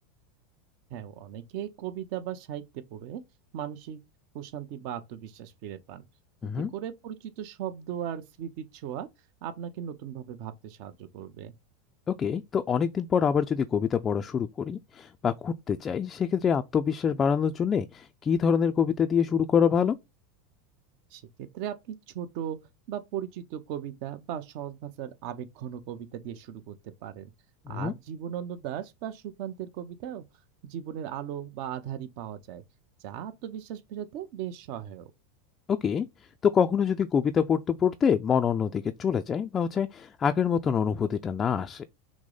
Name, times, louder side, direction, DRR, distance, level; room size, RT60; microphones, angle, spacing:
voice 1, 0.9-3.2 3.5-4.0 4.3-6.0 6.5-9.1 9.4-11.5 21.1-22.6 22.9-26.8 27.0-27.3 27.7-30.2 30.6-32.6 33.0-35.1, right 10 dB, 55° right, 0.7 m, -37 dB
voice 2, 12.1-20.0 27.7-27.9 35.8-36.1 36.4-41.8, left 7 dB, 25° left, 0.3 m, -26 dB
6.1 x 2.1 x 3.8 m
supercardioid pair, 135°, 0 cm